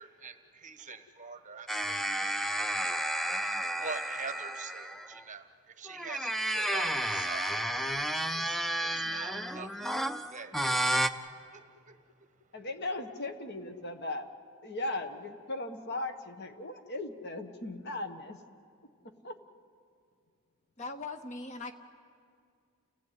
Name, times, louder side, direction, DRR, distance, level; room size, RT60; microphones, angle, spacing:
voice 1, 0.0-2.0 3.4-7.9 8.3-11.1 11.5-12.0, right 4 dB, 35° right, 1.2 m, -45 dB
sound 1, 1.7-5.2 5.9-11.1, right 1 dB, ahead, 0.6 m, -32 dB
voice 2, 12.5-14.2 14.6-18.4 19.2-19.4, left 2 dB, 50° left, 1.5 m, -37 dB
voice 3, 20.8-21.7, left 3 dB, 35° left, 0.9 m, -40 dB
29.5 x 16.0 x 9.5 m
head